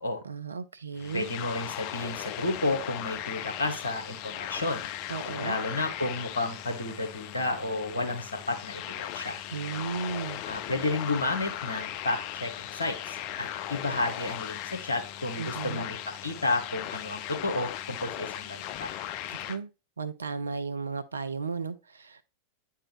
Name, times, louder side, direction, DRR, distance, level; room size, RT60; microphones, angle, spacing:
voice 1, 0.2-1.3 5.1-5.6 9.5-10.4 15.4-15.9 19.5-19.7 20.0-22.2, right 5 dB, 75° right, 0.5 m, -34 dB
sound 1, 1.0-19.6, left 12 dB, 45° left, 0.4 m, -38 dB
voice 2, 1.1-4.8 5.4-9.4 10.5-16.0 16.2-18.9, left 2 dB, 75° left, 1.1 m, -31 dB
8.7 x 3.6 x 3.1 m
figure-of-eight pair, 90°, 0 cm